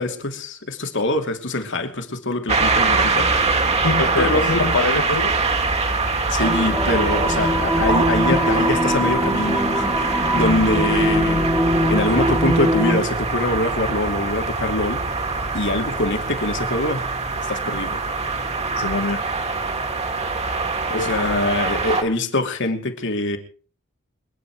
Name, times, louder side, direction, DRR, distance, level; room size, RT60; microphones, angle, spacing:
voice 1, 0.0-3.3 4.2-4.5 6.3-15.0 15.5-17.0 17.5-18.0 20.9-23.4, left 2 dB, 60° left, 2.8 m, -24 dB
sound 1, 2.5-22.0, right 3 dB, 30° right, 2.3 m, -23 dB
voice 2, 3.8-5.4 18.8-19.3 20.9-21.4, left 3 dB, 85° left, 1.2 m, -23 dB
sound 2, 6.4-13.0, equal, 5° right, 1.8 m, -22 dB
27.5 x 10.0 x 4.8 m
head